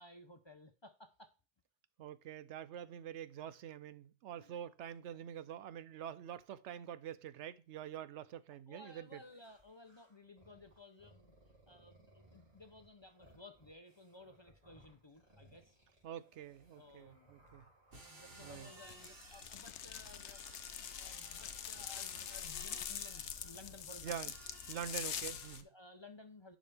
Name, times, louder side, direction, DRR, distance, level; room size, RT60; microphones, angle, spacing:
voice 1, 0.0-1.3 4.3-4.6 8.7-11.3 11.7-15.8 16.8-17.3 18.1-24.3 25.6-26.6, left 2 dB, 30° left, 0.6 m, -57 dB
voice 2, 2.0-9.2 16.0-17.6 18.4-18.7 24.0-24.3 24.7-25.7, right 10 dB, 85° right, 0.9 m, -46 dB
sound 1, 9.1-19.5 19.8-20.8 21.3-24.6, right 1 dB, 35° right, 3.1 m, -66 dB
sound 2, 17.9-25.6, right 2 dB, 60° right, 2.0 m, -57 dB
sound 3, 18.8-25.6, left 9 dB, 80° left, 0.9 m, -44 dB
11.0 x 5.1 x 3.4 m
omnidirectional pair, 1.2 m